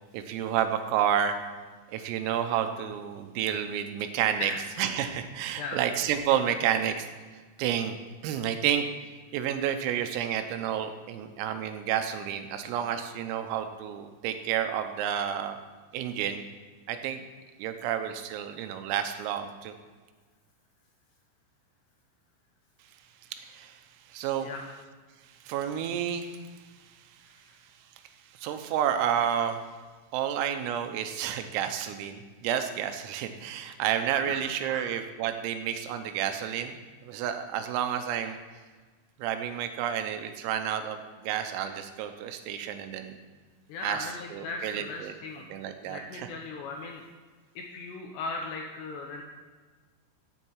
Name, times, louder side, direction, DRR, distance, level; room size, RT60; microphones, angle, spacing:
voice 1, 0.1-1.4 1.9-7.1 7.6-8.0 8.2-8.9 9.3-15.6 15.9-16.4 16.9-17.2 17.6-19.8 23.4-23.8 24.1-24.5 25.5-26.4 28.4-29.6 30.1-36.8 37.0-38.4 39.2-43.2 43.8-46.3, right 9 dB, 85° right, 8 dB, 3.5 m, -30 dB
voice 2, 4.4-4.9 5.6-5.8 24.4-24.7 27.3-27.6 34.3-34.9 43.7-45.5 45.8-47.0 47.6-49.2, left 3 dB, 75° left, 1 dB, 2.6 m, -38 dB
15.5 x 7.7 x 4.7 m, 1.4 s
omnidirectional pair, 6.0 m